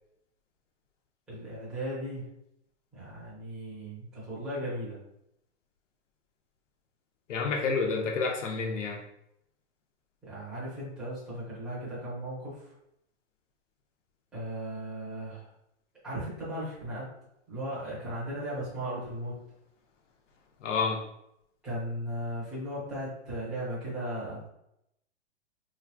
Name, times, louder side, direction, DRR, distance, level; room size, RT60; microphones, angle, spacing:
voice 1, 1.3-2.2 2.9-5.0 10.2-12.7 14.3-15.5 16.0-17.1 17.5-19.4 21.6-24.4, right 1 dB, ahead, -11 dB, 0.7 m, -36 dB
voice 2, 7.3-9.0 20.6-21.0, left 4 dB, 85° left, 1 dB, 0.8 m, -29 dB
3.6 x 3.1 x 2.2 m, 0.78 s
hypercardioid pair, 170°, 36 cm